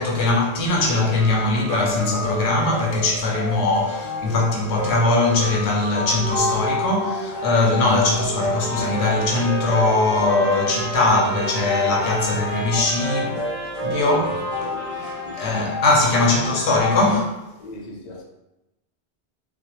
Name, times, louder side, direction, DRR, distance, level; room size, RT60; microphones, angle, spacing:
voice 1, 0.0-13.5 13.8-14.2 15.4-17.4, left 2 dB, 80° left, 0.9 m, -21 dB
sound 1, 0.7-17.1, left 2 dB, 25° left, 0.9 m, -30 dB
sound 2, 5.7-12.2, right 5 dB, 80° right, 0.8 m, -36 dB
Trumpet, 8.4-15.8, equal, 50° right, 0.5 m, -34 dB
voice 2, 13.8-15.6 17.6-18.2, left 1 dB, 50° left, 0.5 m, -37 dB
2.4 x 2.1 x 2.9 m
omnidirectional pair, 1.1 m